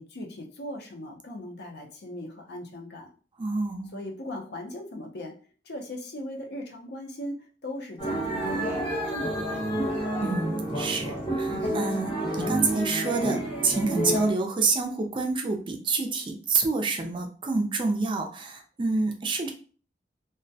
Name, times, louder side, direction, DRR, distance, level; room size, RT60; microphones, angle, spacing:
voice 1, 0.0-3.1 3.9-5.3 5.6-10.0, left 1 dB, 65° left, 2 dB, 0.5 m, -39 dB
voice 2, 3.4-3.9 10.2-19.5, right 3 dB, 30° right, 3 dB, 0.4 m, -28 dB
sound 1, 8.0-14.3, right 1 dB, 30° left, 0.8 m, -29 dB
2.2 x 2.1 x 2.6 m, 0.39 s
head